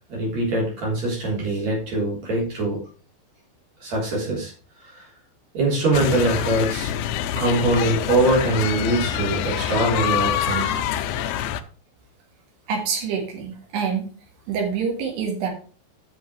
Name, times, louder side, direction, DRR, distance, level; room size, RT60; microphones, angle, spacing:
voice 1, 0.1-2.8 3.8-4.5 4.8-5.0 5.5-6.9 7.4-10.8, right 2 dB, 45° right, -3 dB, 4.5 m, -23 dB
sound 1, 5.9-11.6, left 10 dB, 90° left, 2.7 m, -25 dB
voice 2, 12.7-14.1 14.5-15.5, right 6 dB, 85° right, 1 dB, 4.0 m, -26 dB
8.4 x 6.3 x 4.7 m, 0.39 s
omnidirectional pair, 4.6 m